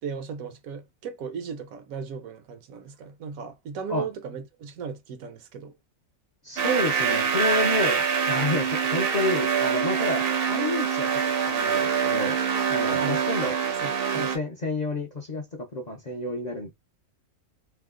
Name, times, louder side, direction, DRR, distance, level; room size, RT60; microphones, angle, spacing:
voice 1, 0.0-5.8 12.9-13.2 13.7-14.3, right 6 dB, 80° right, 1.1 m, -37 dB
voice 2, 6.4-12.4 12.7-13.6 14.1-16.7, left 2 dB, 45° left, 0.5 m, -30 dB
sound 1, 6.6-14.4, right 6 dB, 55° right, 0.7 m, -25 dB
2.8 x 2.2 x 3.6 m
omnidirectional pair, 1.4 m